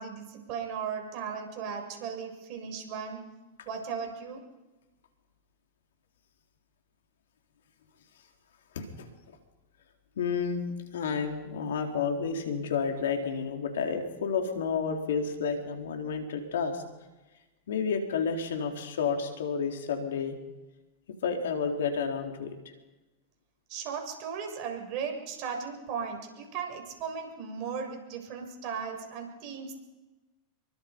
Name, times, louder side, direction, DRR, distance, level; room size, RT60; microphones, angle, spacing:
voice 1, 0.0-3.2 3.7-4.4 23.7-29.7, right 6 dB, 50° right, 3 dB, 7.4 m, -36 dB
voice 2, 8.7-9.1 10.2-10.6 10.9-16.8 17.7-20.4 21.2-22.6, left 6 dB, 75° left, 3 dB, 4.1 m, -30 dB
28.0 x 23.5 x 5.5 m, 1.1 s
hypercardioid pair, 95°, 0 cm